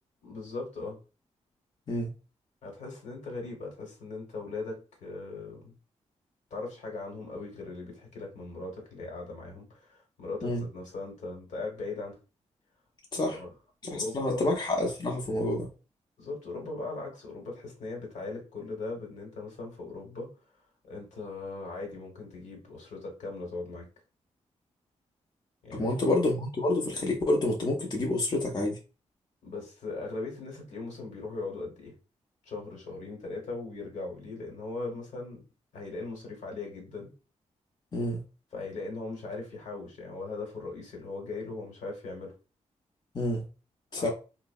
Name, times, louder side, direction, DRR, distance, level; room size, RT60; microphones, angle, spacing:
voice 1, 0.2-1.0 2.6-5.7 6.5-12.2 13.3-13.5 13.8-14.5 16.2-20.3 20.9-23.9 25.6-26.2 29.4-31.9 32.4-35.4 35.7-37.1 38.5-42.3 43.9-44.1, left 3 dB, 70° left, 0 dB, 1.1 m, -39 dB
voice 2, 13.8-15.7 25.7-28.8 37.9-38.2 43.1-43.4 43.9-44.1, left 1 dB, 35° left, 1 dB, 0.6 m, -28 dB
2.5 x 2.0 x 2.3 m, 0.32 s
cardioid pair, 55°, 13 cm